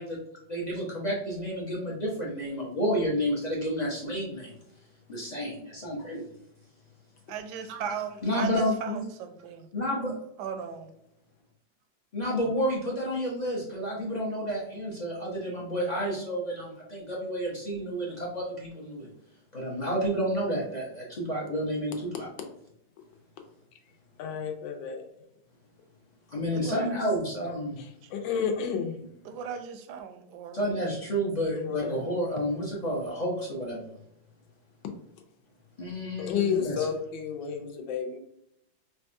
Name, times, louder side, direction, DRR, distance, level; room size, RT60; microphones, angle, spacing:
voice 1, 0.5-4.5 5.1-6.2 8.2-9.0 9.7-10.2 12.1-19.1 19.5-22.3 26.3-27.8 30.5-34.0 35.8-36.9, equal, 50° left, -4 dB, 0.5 m, -30 dB
voice 2, 7.3-9.7 10.4-10.9 26.5-26.9 29.2-30.8, right 6 dB, 70° right, 7 dB, 1.1 m, -37 dB
voice 3, 24.2-25.1 27.8-29.0 31.5-32.0 36.2-38.2, left 7 dB, 80° left, 4 dB, 1.4 m, -31 dB
5.3 x 2.3 x 2.6 m, 0.76 s
omnidirectional pair, 2.1 m